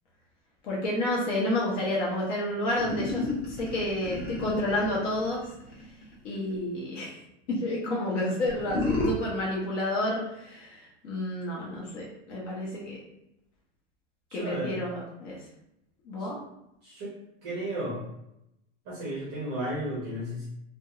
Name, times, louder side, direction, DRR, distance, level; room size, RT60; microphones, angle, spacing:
voice 1, 0.6-5.4 6.2-7.2 7.5-13.0 14.3-15.4 16.1-16.4, left 1 dB, 75° left, -4 dB, 0.8 m, -30 dB
sound 1, 2.8-6.6 8.5-9.1, left 2 dB, 30° left, 0.6 m, -32 dB
voice 2, 14.3-14.8 16.2-16.3 16.8-17.2 17.4-18.0 18.8-20.5, right 1 dB, 20° right, -6 dB, 0.5 m, -34 dB
2.4 x 2.1 x 2.8 m, 0.84 s
supercardioid pair, 180°, 37 cm